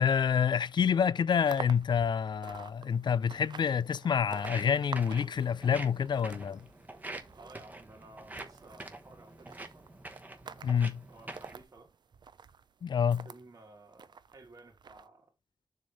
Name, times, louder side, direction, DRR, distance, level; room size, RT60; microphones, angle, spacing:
voice 1, 0.0-6.7 10.6-11.0 12.8-13.3, left 7 dB, 65° left, 0.4 m, -28 dB
sound 1, 1.3-13.4 13.9-15.1, right 6 dB, 60° right, 0.5 m, -49 dB
Walk footsteps, 4.3-11.6, right 2 dB, 20° right, 1.0 m, -46 dB
voice 2, 7.4-9.9 10.5-10.7 11.0-11.9 13.2-15.3, right 2 dB, 45° right, 2.8 m, -55 dB
7.2 x 3.3 x 5.3 m
wide cardioid pair, 160°, 8 cm